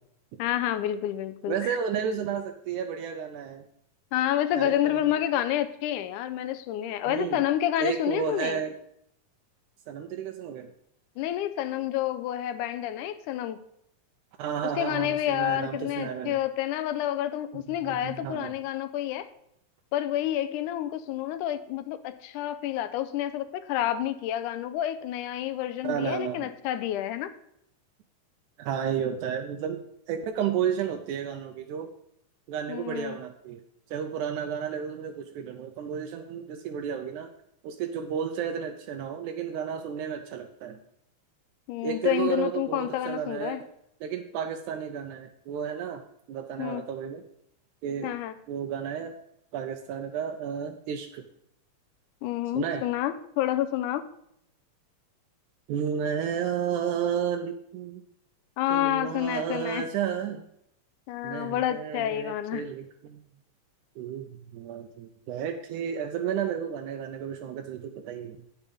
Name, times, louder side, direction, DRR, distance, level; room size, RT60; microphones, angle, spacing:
voice 1, 0.4-1.8 4.1-8.6 11.2-13.6 14.8-19.3 19.9-27.3 32.7-33.2 41.7-43.6 46.6-46.8 48.0-48.3 52.2-54.0 58.6-59.9 61.1-62.6, left 12 dB, 90° left, 12 dB, 2.1 m, -29 dB
voice 2, 1.5-3.7 4.6-5.1 7.1-7.4 7.8-8.7 9.9-10.7 14.4-16.4 17.5-18.5 25.8-26.5 28.6-29.8 30.1-31.9 32.5-33.6 33.9-37.3 37.6-40.8 41.8-43.7 44.0-46.0 46.3-47.2 47.8-48.1 48.5-49.1 49.5-51.3 52.5-52.8 55.7-58.0 58.7-60.5 61.2-63.2 64.0-68.4, right 8 dB, 80° right, 5 dB, 2.0 m, -32 dB
9.3 x 6.9 x 5.2 m, 0.74 s
omnidirectional pair, 3.6 m